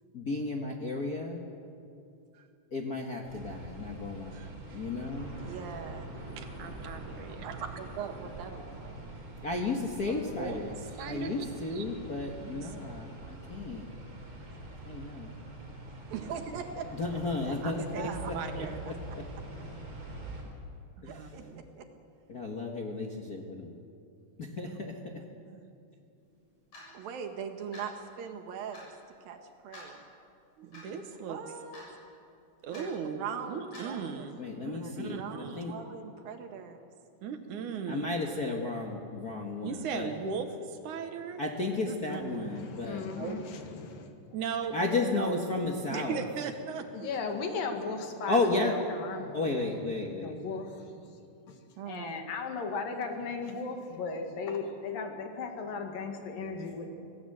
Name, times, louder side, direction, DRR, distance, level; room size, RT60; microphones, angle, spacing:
voice 1, 0.1-1.4 2.7-5.3 9.4-10.8 11.0-13.8 14.8-15.4 16.9-19.2 21.0-21.4 22.3-23.7 24.4-25.1 34.4-35.7 37.9-40.1 41.4-43.0 44.7-46.2 48.3-48.7 49.3-50.3, left 2 dB, 45° left, 0 dB, 1.2 m, -33 dB
sound 1, 3.2-20.4, right 2 dB, 35° right, 5.1 m, -44 dB
voice 2, 4.3-4.9 5.3-6.1 7.4-9.0 16.1-16.9 17.1-18.5 21.1-21.9 26.9-28.9 29.2-29.4 29.6-30.0 31.3-31.8 32.7-34.3 34.8-36.9 51.8-52.2, right 7 dB, 90° right, 4 dB, 3.4 m, -41 dB
voice 3, 6.4-7.8 10.1-11.8 12.4-12.7 16.1-16.3 17.6-18.8 21.2-21.6 24.6-24.8 25.5-25.6 30.6-31.4 32.6-35.8 37.2-38.0 39.6-41.4 41.8-42.5 43.2-43.4 44.3-44.8 45.0-45.4 45.9-46.9 48.1-48.3 50.4-50.6, right 6 dB, 70° right, 7 dB, 2.7 m, -38 dB
Clock, 26.7-26.9 27.7-27.9 28.7-28.9 29.7-29.9 30.7-30.9 31.7-32.0 32.7-32.9 33.7-33.9, left 1 dB, 65° left, 8.6 m, -47 dB
voice 4, 42.3-44.2 46.9-51.6 51.9-56.9, left 4 dB, 80° left, 4 dB, 3.7 m, -37 dB
26.0 x 17.5 x 7.9 m, 2.6 s
omnidirectional pair, 3.9 m